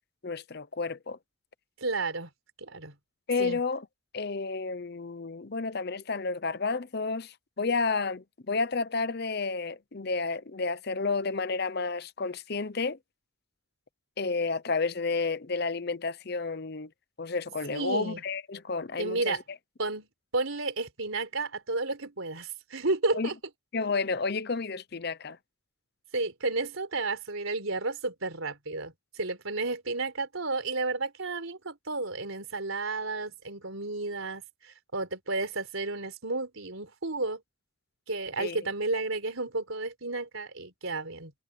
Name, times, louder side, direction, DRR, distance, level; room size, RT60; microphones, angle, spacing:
voice 1, 0.2-1.2 3.3-3.9 4.1-13.0 14.2-16.9 17.2-19.4 23.1-23.3 23.7-25.4 38.4-38.6, left 4 dB, 50° left, 0.8 m, -31 dB
voice 2, 1.8-2.3 2.6-2.9 3.4-3.6 17.7-18.2 19.0-19.4 19.8-23.3 26.1-37.4 38.1-41.3, right 3 dB, 80° right, 4.0 m, -32 dB
head